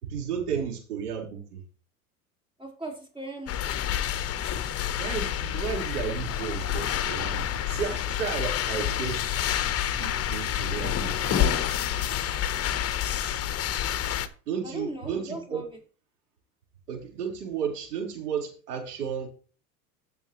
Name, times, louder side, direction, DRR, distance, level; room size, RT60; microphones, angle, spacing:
voice 1, 0.0-1.6 5.0-9.4 10.0-11.3 14.1-14.2 14.5-15.6 16.9-19.3, right 7 dB, 80° right, 0 dB, 4.6 m, -33 dB
voice 2, 2.6-3.8 14.6-15.7, right 1 dB, 10° right, 0 dB, 4.6 m, -38 dB
sound 1, 3.5-14.3, left 10 dB, 30° left, 1.1 m, -28 dB
15.5 x 7.0 x 3.2 m, 0.39 s
hypercardioid pair, 95°, 45 cm